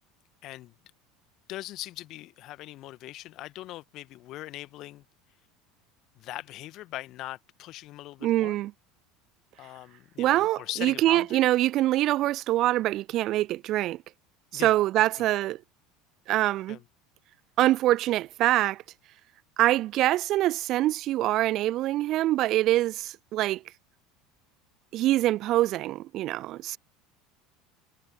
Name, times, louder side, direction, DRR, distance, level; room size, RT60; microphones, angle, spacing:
voice 1, 0.4-0.7 1.5-5.0 6.1-8.6 9.6-11.5 14.5-15.1 16.7-16.8, left 16 dB, 45° left, 1.6 m, -41 dB
voice 2, 8.2-8.7 10.2-14.0 14.5-15.6 16.3-16.8 17.6-18.8 19.6-23.6 24.9-26.8, right 15 dB, 45° right, 0.4 m, -24 dB
figure-of-eight pair, 70°, 0 cm